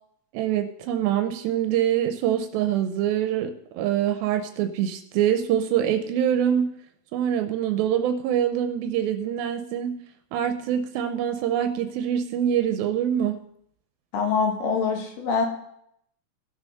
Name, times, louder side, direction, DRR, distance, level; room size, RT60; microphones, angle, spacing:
voice 1, 0.3-6.7 7.1-9.9 10.3-13.4, right 10 dB, 85° right, 8 dB, 2.5 m, -24 dB
voice 2, 14.1-15.5, left 5 dB, 70° left, 2 dB, 3.3 m, -24 dB
15.0 x 6.3 x 5.6 m, 0.73 s
omnidirectional pair, 4.2 m